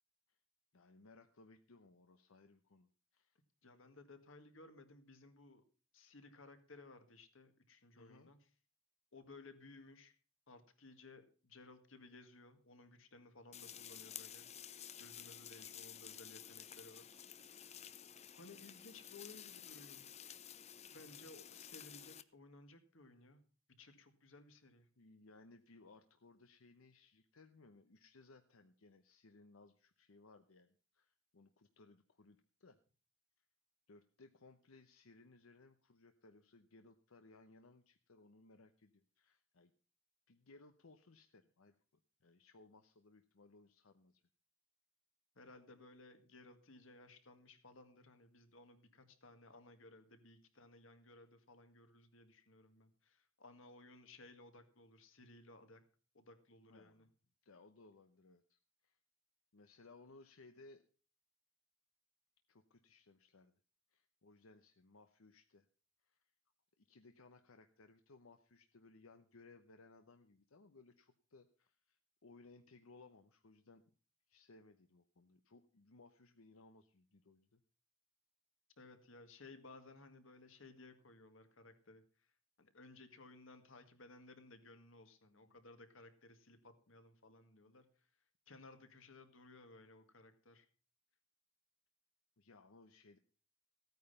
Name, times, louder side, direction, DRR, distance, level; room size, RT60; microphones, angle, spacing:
voice 1, 0.7-3.4 8.0-8.3 25.0-32.8 33.9-39.7 40.3-44.2 56.6-57.1 57.4-59.0 59.5-60.8 62.5-63.5 63.9-65.7 66.0-66.3 66.8-73.8 74.3-77.6 85.5-85.6 92.4-93.2, left 3 dB, 90° left, 8 dB, 0.9 m, -63 dB
voice 2, 3.6-5.6 5.9-8.4 9.1-10.1 10.5-14.5 15.0-17.1 18.3-20.1 20.9-23.4 23.8-24.9 45.4-55.8 56.1-57.1 78.8-82.0 82.6-87.8 88.5-90.7, left 2 dB, 65° left, 8 dB, 1.9 m, -59 dB
sound 1, 13.5-22.2, left 9 dB, 30° left, 0.6 m, -53 dB
15.5 x 9.3 x 5.5 m, 0.38 s
head